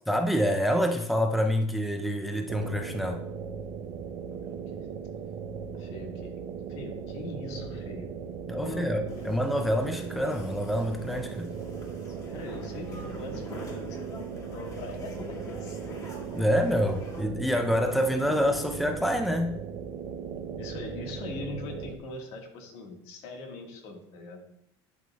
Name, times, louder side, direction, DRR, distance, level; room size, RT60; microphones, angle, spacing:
voice 1, 0.1-3.2 8.5-11.5 16.3-19.6, equal, ahead, 0.5 m, -27 dB
sound 1, 2.5-22.0, right 7 dB, 60° right, 0.7 m, -38 dB
voice 2, 4.3-4.9 5.7-6.3 6.7-8.1 8.5-8.9 12.3-16.0 20.6-24.4, left 2 dB, 70° left, 1.6 m, -41 dB
sound 2, 9.1-17.2, left 2 dB, 30° left, 1.6 m, -46 dB
11.0 x 5.0 x 2.3 m
cardioid pair, 120°, 11 cm